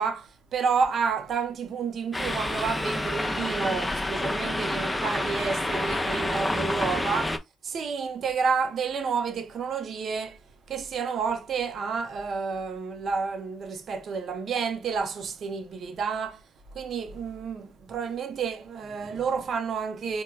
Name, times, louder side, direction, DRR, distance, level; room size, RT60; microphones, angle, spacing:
voice 1, 0.0-7.3 7.6-10.4 10.7-16.5 16.7-20.2, right 5 dB, 60° right, 0.6 m, -30 dB
sound 1, 2.1-7.4, left 1 dB, 10° left, 0.5 m, -28 dB
4.4 x 2.1 x 2.3 m
cardioid pair, 90°, 0 cm